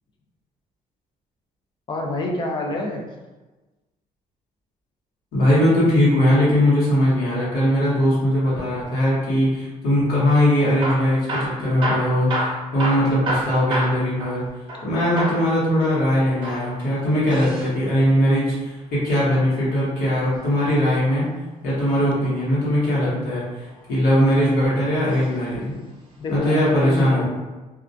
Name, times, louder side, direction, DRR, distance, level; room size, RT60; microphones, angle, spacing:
voice 1, 1.9-3.0 26.2-27.2, left 2 dB, 30° left, 1 dB, 0.4 m, -27 dB
voice 2, 5.3-12.5 12.7-14.4 14.8-21.3 21.6-25.7 26.3-27.2, equal, 90° left, -8 dB, 1.1 m, -20 dB
Hammer / Drill, 10.7-14.9 15.2-15.5 16.3-17.7 19.5-20.7 22.4-22.9 23.6-24.4 25.1-25.3 25.6-25.7 26.4-26.5, right 1 dB, 35° right, 0.6 m, -29 dB
2.3 x 2.1 x 2.6 m, 1.2 s
cardioid pair, 165°, 15 cm